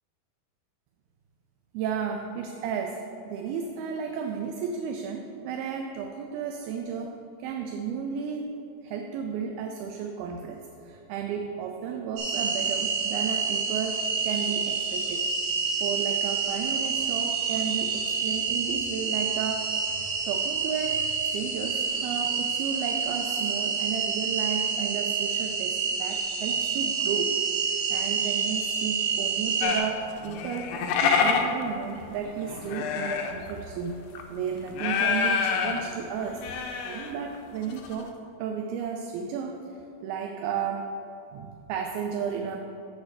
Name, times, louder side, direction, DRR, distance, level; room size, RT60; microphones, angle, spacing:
voice 1, 1.7-15.3 15.8-34.0 34.3-41.0 41.3-42.6, right 6 dB, 85° right, 4 dB, 2.4 m, -33 dB
sound 1, 12.2-29.8, right 5 dB, 65° right, 2.7 m, -28 dB
sound 2, 29.6-33.5 33.9-34.2 34.7-35.8 36.2-37.1 37.4-37.5 37.7-38.0, left 6 dB, 85° left, 1.9 m, -27 dB
7.0 x 5.1 x 6.6 m, 2.8 s
omnidirectional pair, 4.5 m